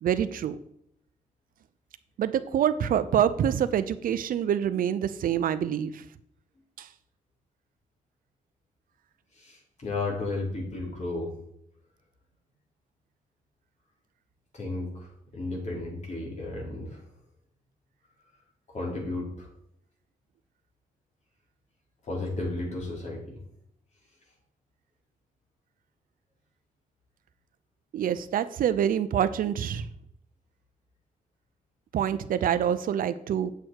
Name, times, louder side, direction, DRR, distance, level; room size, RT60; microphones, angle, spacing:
voice 1, 0.0-0.6 2.2-6.0 6.8-6.9 27.9-29.9 31.9-33.5, right 9 dB, 85° right, 12 dB, 0.7 m, -26 dB
voice 2, 9.4-11.3 14.5-17.0 18.7-19.5 22.0-23.4, left 2 dB, 55° left, -2 dB, 4.2 m, -33 dB
8.5 x 7.8 x 4.7 m, 0.72 s
cardioid pair, 110°, 14 cm